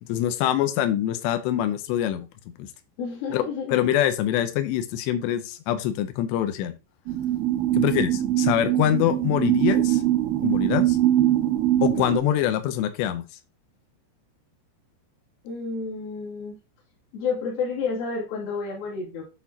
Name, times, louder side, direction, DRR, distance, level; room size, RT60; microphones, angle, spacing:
voice 1, 0.1-2.3 2.6-2.7 3.3-3.4 3.7-6.7 7.7-10.0 10.4-11.0 11.8-13.3, left 11 dB, 80° left, 9 dB, 3.0 m, -24 dB
voice 2, 3.0-3.9 15.4-16.5 17.1-19.2, left 5 dB, 60° left, -3 dB, 4.2 m, -30 dB
sound 1, 7.1-12.2, right 13 dB, 80° right, 2.1 m, -22 dB
12.5 x 4.4 x 2.9 m, 0.29 s
omnidirectional pair, 5.1 m